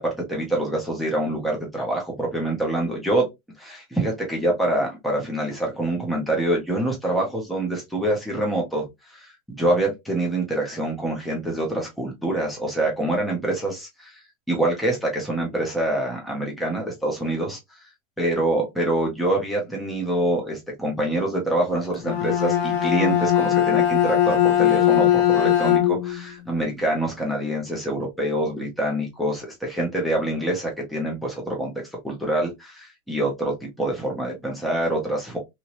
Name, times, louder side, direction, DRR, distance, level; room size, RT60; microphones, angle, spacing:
voice 1, 0.0-3.3 3.6-14.2 14.5-17.6 18.2-31.7 32.0-35.4, right 1 dB, ahead, 0.4 m, -25 dB
Bowed string instrument, 21.9-26.2, left 11 dB, 45° left, 0.7 m, -20 dB
2.9 x 2.8 x 2.8 m
hypercardioid pair, 140°, 42 cm